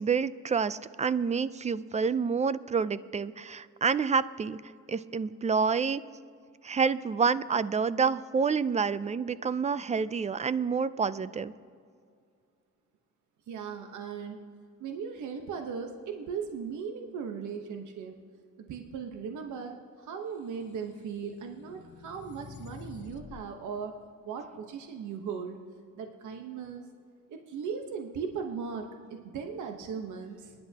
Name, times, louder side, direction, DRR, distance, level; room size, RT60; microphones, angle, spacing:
voice 1, 0.0-4.6 4.9-6.0 6.6-11.5, right 5 dB, 25° right, 16 dB, 0.4 m, -28 dB
voice 2, 13.5-14.4 14.8-18.2 18.6-23.9 24.2-25.6 26.0-26.8 27.3-30.5, right 6 dB, 75° right, 4 dB, 1.1 m, -38 dB
sound 1, 20.5-23.5, left 5 dB, 40° left, 0.8 m, -48 dB
27.5 x 10.5 x 2.9 m, 2.2 s
cardioid pair, 90°, 30 cm